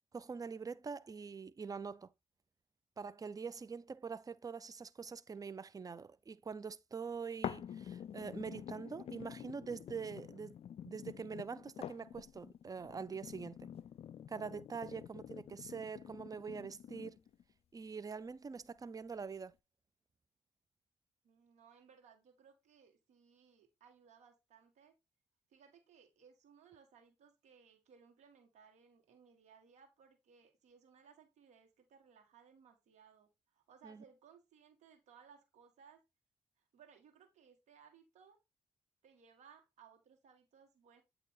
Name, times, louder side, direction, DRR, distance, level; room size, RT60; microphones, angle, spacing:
voice 1, 0.1-2.1 3.0-10.5 10.8-13.7 14.3-17.2 17.7-19.5 33.8-34.0, right 5 dB, 30° right, 0.5 m, -44 dB
sound 1, 7.4-17.4 18.0-18.1, left 9 dB, 60° left, 0.4 m, -48 dB
voice 2, 21.2-24.9 25.5-36.0 36.6-38.4 39.0-41.0, right 6 dB, 75° right, 1.7 m, -63 dB
8.3 x 3.0 x 4.6 m
supercardioid pair, 55°, 12 cm